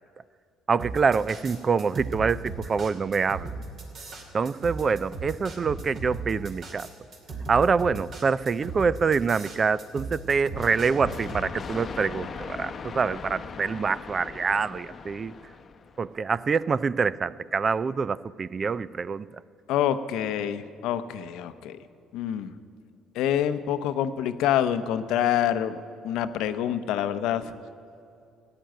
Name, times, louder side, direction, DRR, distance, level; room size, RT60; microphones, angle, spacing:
voice 1, 0.7-3.5 4.3-6.9 7.5-15.3 16.0-19.3, right 5 dB, 35° right, 19 dB, 0.3 m, -25 dB
sound 1, 0.8-11.5, right 3 dB, 50° right, 2.6 m, -37 dB
sound 2, 10.5-16.1, left 5 dB, 40° left, 0.8 m, -39 dB
voice 2, 19.7-21.8 22.1-22.5 23.1-25.8 26.0-27.5, left 10 dB, 80° left, 11 dB, 0.7 m, -26 dB
14.0 x 9.3 x 9.0 m, 2.5 s
cardioid pair, 105°, 0 cm